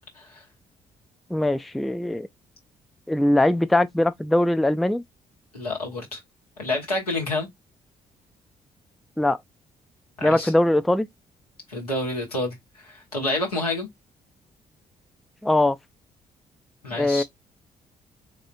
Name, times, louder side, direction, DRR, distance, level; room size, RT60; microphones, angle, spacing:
voice 1, 1.3-2.3 3.1-5.0 9.2-9.4 10.2-11.1 15.4-15.8 17.0-17.2, left 1 dB, ahead, 0.3 m, -21 dB
voice 2, 5.5-6.2 6.6-7.5 10.2-10.5 11.7-12.6 12.9-13.9 16.8-17.2, left 2 dB, 85° left, 1.0 m, -28 dB
4.0 x 3.3 x 2.4 m
figure-of-eight pair, 40°, 19 cm